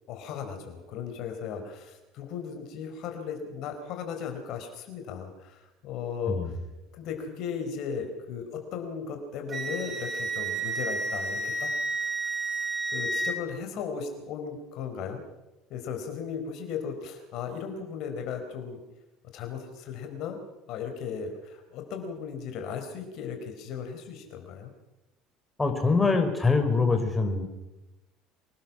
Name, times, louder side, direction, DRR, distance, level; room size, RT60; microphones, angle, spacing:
voice 1, 0.1-6.6 6.9-11.7 12.9-15.2 15.7-18.8 19.3-20.4 20.7-24.7, left 6 dB, 55° left, 5 dB, 4.5 m, -36 dB
Wind instrument woodwind instrument, 9.5-13.4, right 2 dB, 30° right, 4.0 m, -31 dB
voice 2, 25.6-27.5, left 4 dB, 15° left, 5 dB, 5.0 m, -24 dB
25.5 x 20.0 x 6.2 m, 1.0 s
hypercardioid pair, 65°, 0 cm